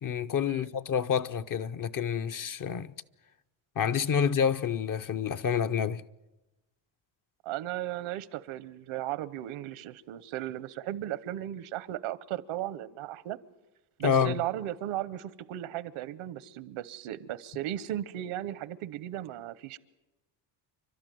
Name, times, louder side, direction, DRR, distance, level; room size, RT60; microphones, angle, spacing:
voice 1, 0.0-2.9 3.8-6.0 14.0-14.4, left 7 dB, 45° left, 0.7 m, -28 dB
voice 2, 7.4-13.4 14.0-19.8, right 13 dB, 85° right, 1.0 m, -36 dB
29.5 x 12.5 x 9.3 m
cardioid pair, 110°, 48 cm